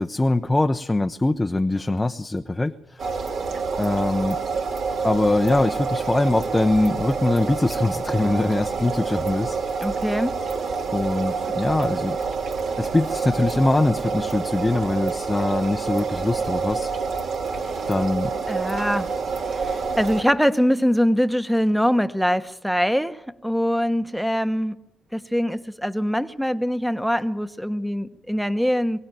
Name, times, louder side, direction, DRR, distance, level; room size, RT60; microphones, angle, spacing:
voice 1, 0.0-3.2 3.8-4.4 5.0-9.6 10.9-12.2 12.8-16.9 17.9-18.3, left 2 dB, 15° left, 6 dB, 0.7 m, -22 dB
sound 1, 3.0-20.2, right 5 dB, 60° right, 2.3 m, -27 dB
voice 2, 9.8-10.4 18.5-19.1 19.4-24.8 25.1-29.0, equal, ahead, 12 dB, 1.1 m, -23 dB
23.5 x 17.0 x 9.2 m, 0.90 s
cardioid pair, 90°, 0 cm